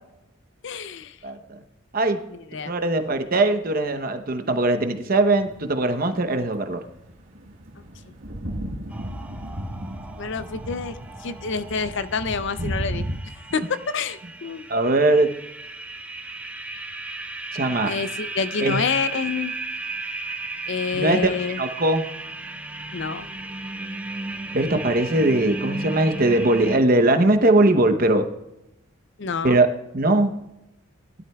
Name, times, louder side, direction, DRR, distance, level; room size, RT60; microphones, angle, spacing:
voice 1, 0.6-1.2 2.3-2.7 10.2-11.0 11.2-13.0 13.5-14.7 17.9-19.5 20.7-21.6 22.9-23.3 29.2-29.6, left 5 dB, 55° left, 13 dB, 0.5 m, -27 dB
voice 2, 2.7-6.8 14.7-15.3 17.5-17.9 18.6-18.8 20.9-22.0 24.5-28.3 29.4-29.7 29.9-30.3, right 2 dB, 45° right, 7 dB, 0.9 m, -20 dB
sound 1, 5.4-5.9 6.8-13.2, equal, 60° right, 2.3 m, -34 dB
sound 2, 8.9-26.8, right 2 dB, 5° right, 0.6 m, -35 dB
20.0 x 12.5 x 2.3 m, 0.90 s
head